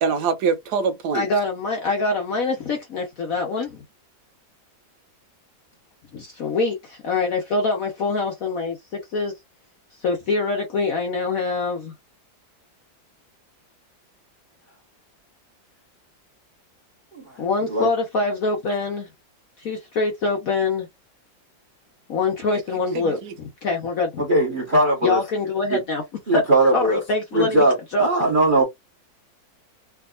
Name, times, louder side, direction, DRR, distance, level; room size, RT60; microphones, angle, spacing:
voice 1, 0.0-1.3 22.9-23.3, right 5 dB, 70° right, 1.1 m, -24 dB
voice 2, 1.1-3.8 6.1-8.8 9.1-9.3 10.0-11.9 17.4-19.1 19.6-20.9 22.1-24.2 25.0-26.0 26.3-26.4 26.7-27.6 27.9-28.1, left 3 dB, 60° left, 1.0 m, -24 dB
voice 3, 24.2-25.2 25.7-25.8 26.3-27.0 27.3-28.6, right 1 dB, 30° right, 1.1 m, -19 dB
3.4 x 2.7 x 2.3 m
omnidirectional pair, 2.1 m